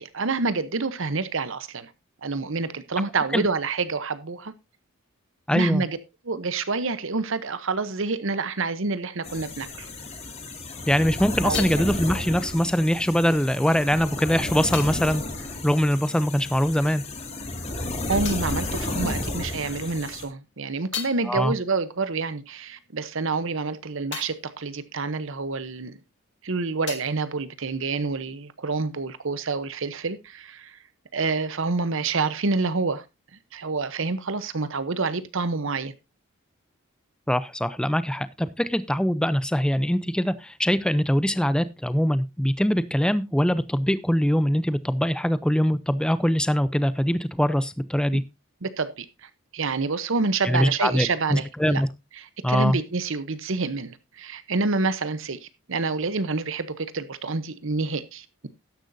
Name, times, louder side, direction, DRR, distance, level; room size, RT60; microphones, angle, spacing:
voice 1, 0.0-1.9 2.2-4.5 5.5-6.0 6.2-9.9 11.4-11.6 18.1-26.0 26.4-30.8 31.1-33.0 33.5-35.9 48.6-51.8 52.2-58.5, right 4 dB, 65° right, 0.9 m, -28 dB
voice 2, 5.5-5.8 10.9-15.2 15.6-17.0 21.3-21.5 37.3-48.2 50.4-51.9 52.4-52.8, equal, 5° left, 0.6 m, -23 dB
sound 1, 9.2-20.2, left 2 dB, 30° left, 2.3 m, -32 dB
sound 2, 18.3-19.7 20.1-26.1 26.4-28.4, left 9 dB, 60° left, 1.5 m, -42 dB
13.0 x 10.5 x 2.7 m
head